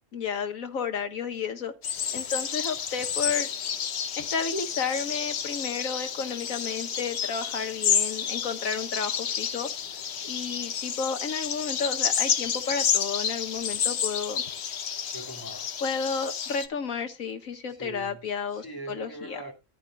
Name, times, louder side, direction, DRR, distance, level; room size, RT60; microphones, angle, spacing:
voice 1, 0.1-1.7 2.1-3.5 4.2-9.7 10.2-14.4 15.8-19.4, left 5 dB, 85° left, 1.7 m, -32 dB
sound 1, 1.8-16.7, left 8 dB, 55° left, 1.0 m, -30 dB
voice 2, 15.1-15.7 17.7-18.2 18.5-19.5, right 2 dB, 15° left, 2.2 m, -41 dB
14.0 x 9.9 x 2.3 m
omnidirectional pair, 1.4 m